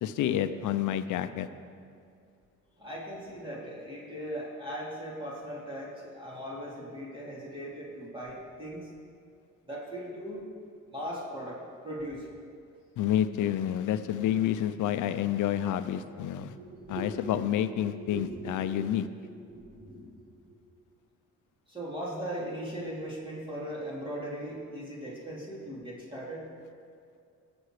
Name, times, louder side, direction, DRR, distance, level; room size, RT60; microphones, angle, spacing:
voice 1, 0.0-1.5 13.0-16.5 16.9-19.1, left 10 dB, 80° left, 11 dB, 0.7 m, -29 dB
voice 2, 2.8-8.9 9.7-10.4 10.9-12.3 16.5-17.3 17.7-18.6 19.3-20.2 21.7-26.4, equal, 15° right, -6 dB, 3.5 m, -39 dB
19.0 x 7.2 x 5.0 m, 2.3 s
cardioid pair, 90°, 30 cm